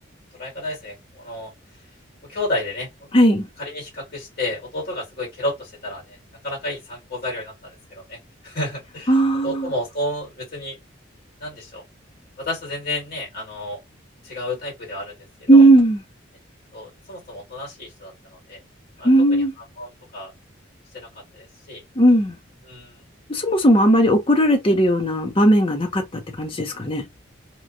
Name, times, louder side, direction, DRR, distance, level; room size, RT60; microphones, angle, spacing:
voice 1, 0.3-1.5 2.2-2.9 3.6-6.2 6.4-8.2 8.4-9.1 9.4-10.8 11.4-11.8 12.4-13.8 14.2-15.6 16.7-18.6 19.0-19.4 19.8-20.3 20.9-21.8 22.6-23.0, left 1 dB, 50° left, 1.8 m, -31 dB
voice 2, 3.1-3.5 9.1-9.7 15.5-16.0 19.0-19.5 22.0-22.3 23.3-27.0, right 1 dB, 25° left, 0.6 m, -16 dB
2.9 x 2.3 x 2.6 m
head